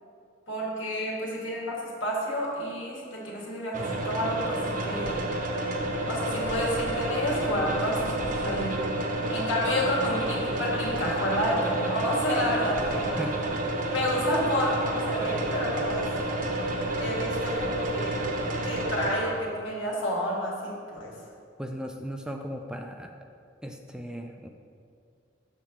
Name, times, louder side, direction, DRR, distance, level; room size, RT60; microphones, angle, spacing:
voice 1, 0.5-5.2 6.1-8.8 9.3-13.2 13.9-16.1 17.0-18.3 18.6-21.1, equal, 80° left, -3 dB, 1.7 m, -30 dB
sound 1, 3.7-19.1, right 1 dB, 45° right, 0.8 m, -30 dB
voice 2, 21.6-23.1 23.6-24.5, equal, 5° right, 3 dB, 0.3 m, -37 dB
7.1 x 4.2 x 5.9 m, 2.3 s
head